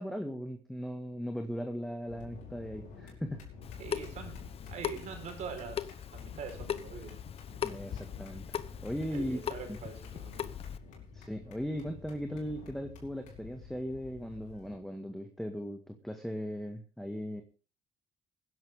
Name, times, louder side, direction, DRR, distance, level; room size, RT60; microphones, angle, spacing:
voice 1, 0.0-3.5 7.6-9.4 9.7-9.8 11.1-17.4, equal, 5° left, 5 dB, 1.8 m, -38 dB
sound 1, 2.1-14.7, left 6 dB, 80° left, 5.5 m, -51 dB
Water tap faucet / Sink (filling or washing) / Drip, 3.6-10.8, left 8 dB, 50° left, 1.0 m, -40 dB
voice 2, 3.8-7.2 9.1-10.5, right 6 dB, 65° right, 5 dB, 4.5 m, -44 dB
20.0 x 11.0 x 3.6 m, 0.34 s
cardioid pair, 85°, 13 cm